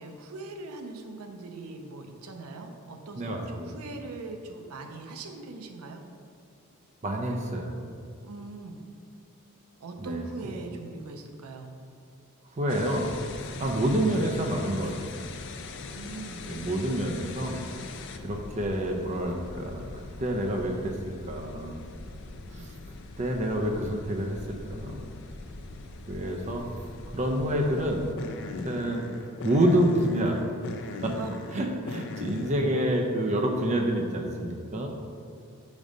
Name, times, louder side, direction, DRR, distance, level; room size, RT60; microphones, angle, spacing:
voice 1, 0.0-6.0 8.2-8.8 9.8-11.8 13.5-13.7 15.8-16.5 22.5-22.6 31.2-31.4, right 3 dB, 80° right, 5 dB, 0.5 m, -41 dB
voice 2, 3.2-3.7 7.0-7.7 10.0-10.5 12.6-15.3 16.4-17.6 18.2-21.0 21.3-21.8 22.5-22.7 23.2-25.1 26.1-26.7 27.1-28.1 28.6-29.0 29.4-30.4 31.0-31.2 31.5-34.9, right 1 dB, 30° right, 1 dB, 0.5 m, -28 dB
sound 1, 12.7-32.5, left 3 dB, 55° left, 0.4 m, -41 dB
5.2 x 3.8 x 5.2 m, 2.3 s
head